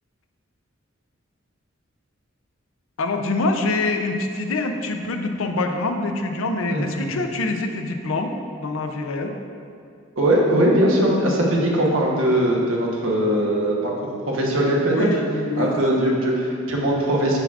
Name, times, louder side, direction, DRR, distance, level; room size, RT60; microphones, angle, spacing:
voice 1, 3.0-9.4 14.9-15.8 16.1-16.2, left 2 dB, 85° left, 5 dB, 0.5 m, -25 dB
voice 2, 6.7-7.1 10.2-13.9 14.3-15.1 15.6-17.4, right 1 dB, 80° right, -2 dB, 1.1 m, -20 dB
7.3 x 6.7 x 2.5 m, 2.5 s
head